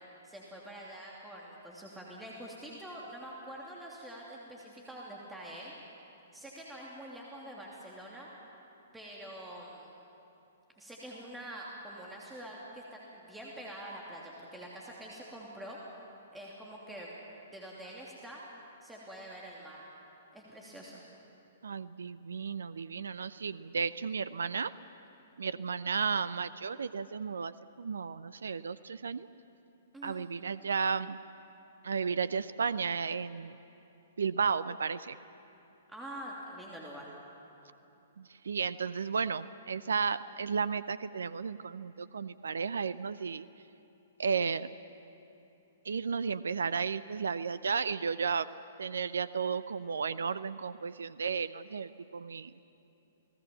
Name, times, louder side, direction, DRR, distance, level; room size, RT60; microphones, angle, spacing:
voice 1, 0.2-5.7 6.3-8.3 8.9-9.9 10.8-15.8 16.3-17.1 17.5-18.4 18.8-19.8 20.3-21.0 29.9-30.2 35.9-37.1, right 1 dB, 5° right, -4 dB, 2.9 m, -46 dB
voice 2, 21.6-24.7 25.4-29.3 30.0-31.2 31.8-33.6 34.2-35.2 38.2-43.4 44.2-44.7 45.8-48.5 48.8-52.5, right 5 dB, 70° right, 17 dB, 0.5 m, -33 dB
29.0 x 18.5 x 7.2 m, 2.9 s
figure-of-eight pair, 115°, 0 cm